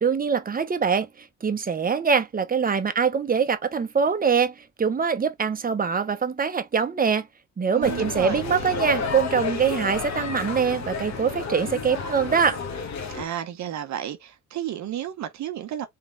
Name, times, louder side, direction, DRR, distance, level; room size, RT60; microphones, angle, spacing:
voice 1, 0.0-7.3 7.6-12.6, right 6 dB, 30° right, 0.9 m, -23 dB
voice 2, 7.7-8.4 13.1-15.9, right 10 dB, 65° right, 0.8 m, -32 dB
sound 1, 7.8-13.3, left 4 dB, 65° left, 1.3 m, -31 dB
3.7 x 3.1 x 3.8 m
cardioid pair, 90°, 30 cm